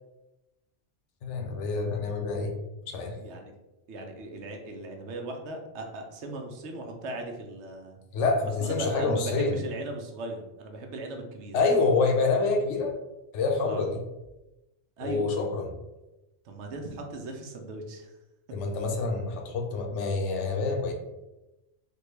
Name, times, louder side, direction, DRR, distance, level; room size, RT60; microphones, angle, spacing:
voice 1, 1.2-2.5 2.8-3.2 8.1-9.6 11.5-12.9 13.3-14.0 15.0-15.7 18.5-20.9, left 3 dB, 75° left, 3 dB, 0.9 m, -27 dB
voice 2, 3.2-3.5 3.9-8.0 8.6-11.6 13.7-13.9 15.0-15.3 16.4-18.1, right 2 dB, 75° right, 3 dB, 0.9 m, -38 dB
3.5 x 2.2 x 3.1 m, 0.99 s
omnidirectional pair, 1.2 m